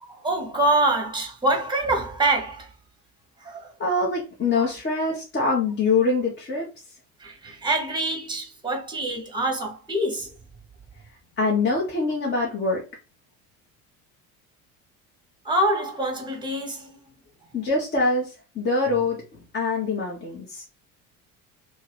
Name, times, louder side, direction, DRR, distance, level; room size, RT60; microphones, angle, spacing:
voice 1, 0.0-2.7 3.4-3.7 4.5-4.7 7.2-10.3 15.4-17.0, right 2 dB, 10° right, 1.0 m, -25 dB
voice 2, 3.8-6.7 11.4-12.8 17.5-20.6, left 3 dB, 25° left, 0.9 m, -24 dB
2.7 x 2.6 x 3.2 m
figure-of-eight pair, 65°, 45 cm